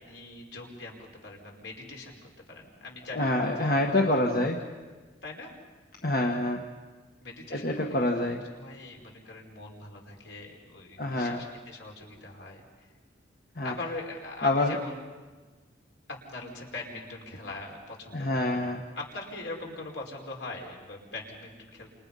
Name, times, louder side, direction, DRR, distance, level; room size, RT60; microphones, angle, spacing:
voice 1, 0.0-2.2 2.5-4.0 5.2-5.5 7.2-12.9 13.6-14.9 16.1-18.6 18.9-21.9, left 2 dB, 70° left, 0 dB, 5.3 m, -42 dB
voice 2, 3.1-4.6 6.0-6.7 7.5-8.4 11.0-11.4 13.5-13.7 14.4-14.8 18.1-18.8, left 1 dB, 50° left, 1 dB, 1.7 m, -26 dB
30.0 x 28.0 x 5.6 m, 1.3 s
head